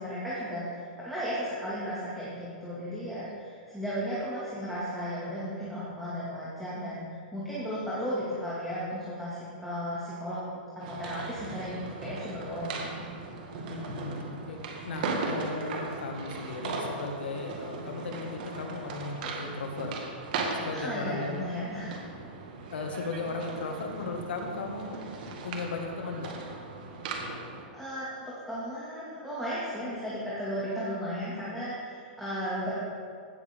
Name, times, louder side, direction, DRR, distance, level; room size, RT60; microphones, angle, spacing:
voice 1, 0.0-10.4 10.9-12.9 20.7-22.1 27.7-32.7, equal, ahead, -10 dB, 2.0 m, -35 dB
sound 1, 10.8-27.6, right 3 dB, 55° right, 1.6 m, -38 dB
voice 2, 13.7-14.6 14.8-19.9 20.5-21.5 22.7-25.0 25.4-26.3, left 3 dB, 85° left, 2 dB, 1.8 m, -36 dB
15.5 x 7.0 x 3.6 m, 2.1 s
hypercardioid pair, 155°, 6 cm